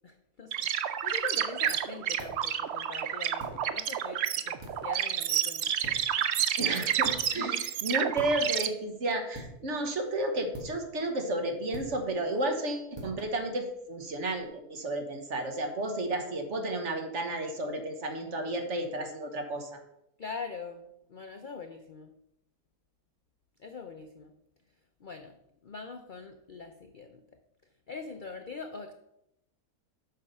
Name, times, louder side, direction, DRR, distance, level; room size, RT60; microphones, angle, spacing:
voice 1, 0.0-4.6 4.8-5.7 7.3-7.6 20.2-22.1 23.6-24.3 25.0-25.4 25.6-27.2 27.9-28.9, left 4 dB, 55° left, 6 dB, 0.5 m, -43 dB
sound 1, 0.5-8.7, right 10 dB, 70° right, 0.6 m, -30 dB
sound 2, 1.0-14.5, equal, 15° right, 2.1 m, -49 dB
voice 2, 6.6-19.8, right 1 dB, 50° right, 5 dB, 1.4 m, -32 dB
7.9 x 6.0 x 5.4 m, 0.82 s
omnidirectional pair, 1.7 m